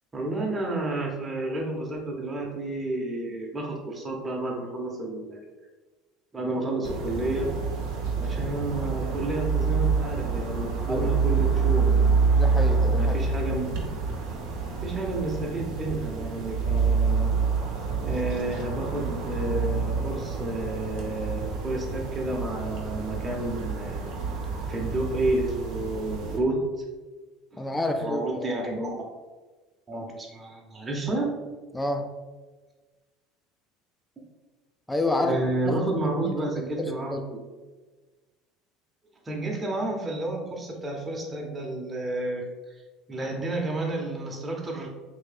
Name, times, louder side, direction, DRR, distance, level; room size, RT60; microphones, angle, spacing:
voice 1, 0.1-5.4 6.3-7.5 8.2-12.3 12.9-13.7 14.8-17.4 18.0-24.0 24.7-26.5 27.5-28.9 29.9-31.3 35.2-37.2 39.2-42.4 43.1-44.9, right 2 dB, 20° right, -2 dB, 0.8 m, -30 dB
sound 1, 6.8-26.4, right 5 dB, 65° right, 0.7 m, -27 dB
voice 2, 12.3-13.2 27.6-28.5 31.7-32.1 34.9-35.4 35.6-35.9 36.2-36.4 36.8-37.2, left 1 dB, 10° left, 5 dB, 0.4 m, -28 dB
3.1 x 2.7 x 3.3 m, 1.3 s
hypercardioid pair, 70°, 0 cm